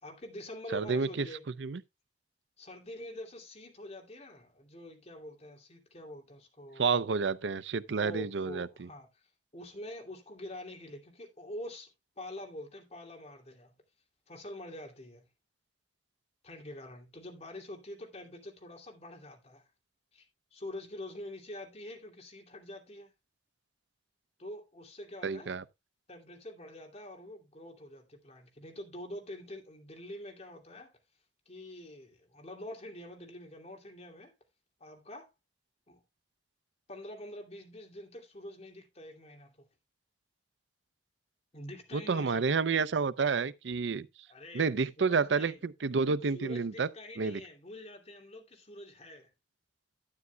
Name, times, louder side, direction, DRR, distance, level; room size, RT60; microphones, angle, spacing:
voice 1, 0.0-1.5 2.6-7.1 8.0-11.9 12.2-13.8 14.3-15.3 16.4-19.7 20.1-20.3 20.5-23.1 24.4-25.5 26.1-31.0 31.5-34.3 34.8-35.3 35.9-36.0 36.9-39.7 41.5-42.5 44.3-45.6 46.3-49.3, left 1 dB, 40° left, 2.7 m, -46 dB
voice 2, 0.7-1.3 1.6-1.8 6.8-8.9 25.2-25.6 41.9-44.1 44.5-46.9 47.2-47.4, right 5 dB, 85° right, 0.6 m, -30 dB
12.0 x 9.4 x 2.3 m
head